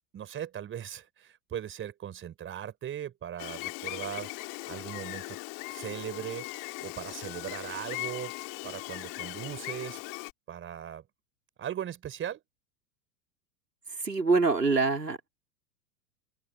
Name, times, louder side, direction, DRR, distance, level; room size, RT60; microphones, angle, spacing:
voice 1, 0.1-5.4 5.7-6.5 6.8-8.3 8.6-10.0 10.5-11.0 11.6-12.4, right 10 dB, 25° right, 4.9 m, -39 dB
Gull seagull, 3.4-10.3, left 27 dB, 40° left, 2.7 m, -39 dB
voice 2, 14.0-15.3, right 4 dB, 90° right, 4.1 m, -25 dB
open air
figure-of-eight pair, 95°, 47 cm